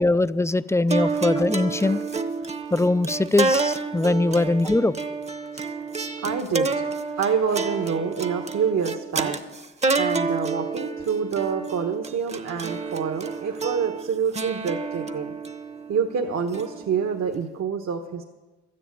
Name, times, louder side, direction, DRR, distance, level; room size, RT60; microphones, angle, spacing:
voice 1, 0.0-2.0 2.7-4.9, left 2 dB, 10° left, 15 dB, 0.4 m, -21 dB
sound 1, 0.9-17.4, right 4 dB, 20° right, 0.9 m, -29 dB
voice 2, 6.2-6.7 7.2-9.4 9.9-15.3 15.9-18.2, right 6 dB, 60° right, 3 dB, 1.3 m, -27 dB
12.5 x 10.0 x 8.9 m, 1.2 s
cardioid pair, 90°, 30 cm